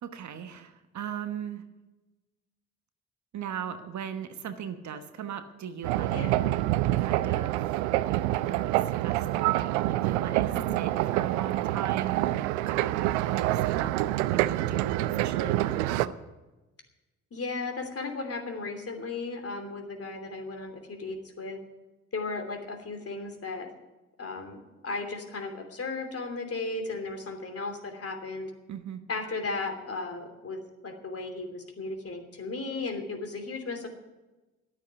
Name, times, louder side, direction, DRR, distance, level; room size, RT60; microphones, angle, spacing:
voice 1, 0.0-1.6 3.3-6.3 7.0-7.8 8.1-13.9 14.3-16.1 28.7-29.0, right 8 dB, 55° right, 9 dB, 1.2 m, -38 dB
sound 1, 5.8-16.1, right 16 dB, 85° right, 0.5 m, -27 dB
voice 2, 17.3-21.6 22.1-23.7 24.2-28.5 29.1-33.9, left 3 dB, 45° left, 5 dB, 3.0 m, -35 dB
11.0 x 9.0 x 9.6 m, 1.1 s
hypercardioid pair, 45°, 34 cm